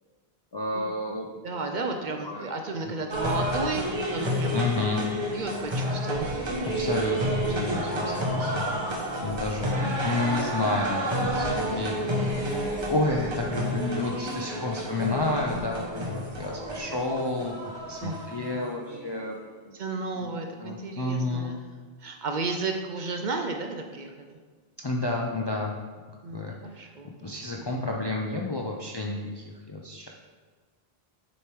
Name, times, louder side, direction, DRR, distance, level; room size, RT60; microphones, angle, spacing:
voice 1, 0.5-1.3 1.7-1.9 2.2-2.5 2.8-2.9 4.5-5.0 6.6-8.9 9.2-12.5 12.9-17.5 17.9-19.4 20.2-20.3 20.6-21.5 24.8-25.8 26.3-26.9 27.2-30.1, left 2 dB, 40° left, -1 dB, 0.3 m, -30 dB
voice 2, 1.4-4.6 5.3-6.5 8.8-9.5 18.0-18.8 19.7-21.6 22.0-24.4 26.2-27.7, right 3 dB, 60° right, 4 dB, 0.6 m, -34 dB
sound 1, 3.1-19.2, equal, 30° right, 0.8 m, -30 dB
6.7 x 3.2 x 4.5 m, 1.5 s
omnidirectional pair, 1.0 m